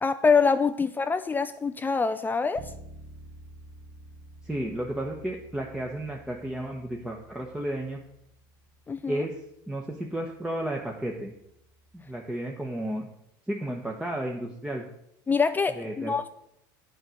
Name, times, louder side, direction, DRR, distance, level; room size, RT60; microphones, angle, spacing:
voice 1, 0.0-2.7 8.9-9.2 15.3-16.3, left 5 dB, 15° left, 10 dB, 0.4 m, -25 dB
Bass guitar, 2.6-12.4, right 2 dB, 55° right, 1.3 m, -51 dB
voice 2, 4.4-8.0 9.1-9.4 9.7-11.3 11.9-13.1 13.5-14.8 15.8-16.2, right 1 dB, 5° right, 0 dB, 1.1 m, -33 dB
7.9 x 5.5 x 7.7 m, 0.78 s
supercardioid pair, 105°, 11 cm